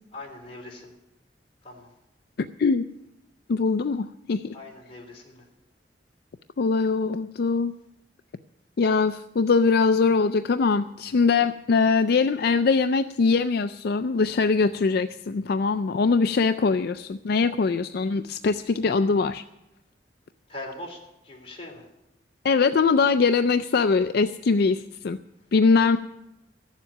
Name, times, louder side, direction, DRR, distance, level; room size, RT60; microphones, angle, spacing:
voice 1, 0.1-0.9 1.6-1.9 4.5-5.4 20.5-21.0 21.2-21.8, left 1 dB, 35° left, 0 dB, 3.3 m, -40 dB
voice 2, 2.4-2.8 3.5-4.5 6.6-7.7 8.8-19.4 22.4-25.2 25.5-26.0, left 4 dB, 65° left, 10 dB, 0.4 m, -22 dB
14.5 x 7.4 x 9.8 m, 0.91 s
head